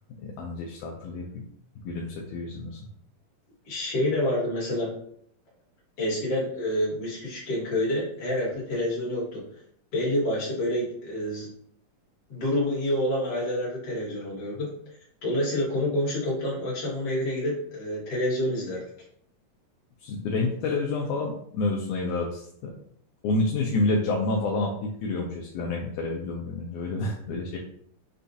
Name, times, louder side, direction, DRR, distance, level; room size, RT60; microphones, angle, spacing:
voice 1, 0.2-1.4 1.8-2.8 20.0-22.7 23.2-27.6, left 2 dB, 80° left, -1 dB, 1.8 m, -29 dB
voice 2, 3.7-4.9 6.0-9.4 9.9-11.5 12.3-14.7 15.2-18.8 27.5-27.6, left 1 dB, 55° left, -5 dB, 2.1 m, -28 dB
6.6 x 2.4 x 2.6 m, 0.66 s
omnidirectional pair, 4.0 m